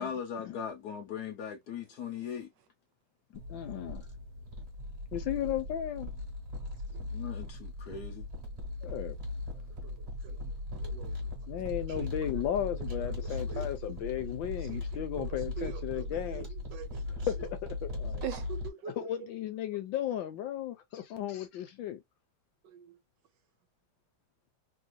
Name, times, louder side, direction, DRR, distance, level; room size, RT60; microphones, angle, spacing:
voice 1, 0.0-2.5 7.1-8.3, left 7 dB, 60° left, 1.3 m, -39 dB
sound 1, 3.3-18.7, left 2 dB, 40° right, 1.3 m, -38 dB
voice 2, 3.5-4.1 5.1-6.1 8.8-9.2 11.5-16.5 17.3-17.4 17.6-18.2 19.0-22.0, left 11 dB, 80° left, 1.5 m, -35 dB
voice 3, 9.8-10.5 10.8-12.3 13.0-13.7 14.6-17.3 18.2-19.3 22.6-23.0, right 9 dB, 75° right, 1.2 m, -45 dB
3.4 x 2.7 x 2.3 m
omnidirectional pair, 2.1 m